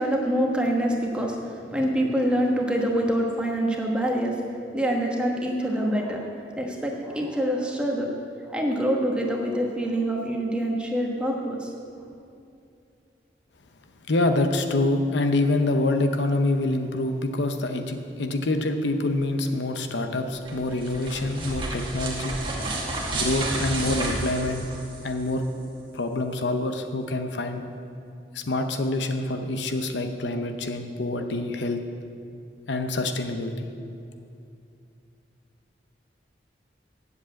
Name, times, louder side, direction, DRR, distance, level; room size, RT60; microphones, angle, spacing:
voice 1, 0.0-4.4 4.7-8.1 8.4-11.7, equal, 5° right, -1 dB, 1.1 m, -25 dB
voice 2, 14.1-22.4 23.1-24.7 25.0-25.4 25.9-27.6 28.3-31.8 32.7-33.7, left 2 dB, 80° left, 6 dB, 0.8 m, -26 dB
sound 1, 20.3-25.3, right 2 dB, 30° right, 1.3 m, -31 dB
8.2 x 7.6 x 8.2 m, 2.5 s
head